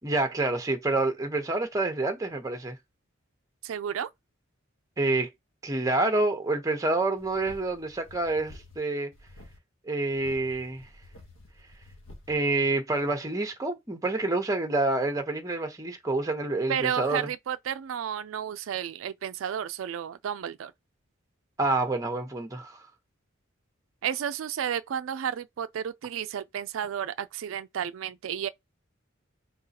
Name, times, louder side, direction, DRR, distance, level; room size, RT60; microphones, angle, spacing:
voice 1, 0.0-2.8 5.0-5.3 5.6-9.1 9.9-10.8 12.3-17.3 21.6-22.7, right 2 dB, 15° right, 0.9 m, -27 dB
voice 2, 3.6-4.1 16.7-20.7 24.0-28.5, right 9 dB, 85° right, 0.4 m, -32 dB
sound 1, 7.2-8.8 9.1-9.6 10.1-12.3, left 2 dB, 85° left, 1.4 m, -51 dB
3.8 x 3.8 x 2.8 m
head